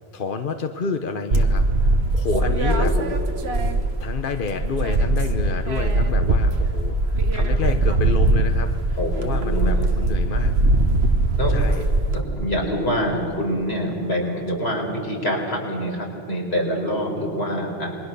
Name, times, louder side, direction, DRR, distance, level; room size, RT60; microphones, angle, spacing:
voice 1, 0.1-3.0 4.0-10.5 11.5-11.8, left 5 dB, 60° left, 7 dB, 1.1 m, -29 dB
sound 1, 1.3-4.2 4.5-12.2, right 2 dB, 90° right, 1.6 m, -20 dB
voice 2, 2.7-3.0 9.0-9.9 11.4-11.5 12.1-17.9, equal, 85° left, 0 dB, 4.7 m, -25 dB
28.0 x 22.0 x 6.8 m, 2.4 s
omnidirectional pair, 1.0 m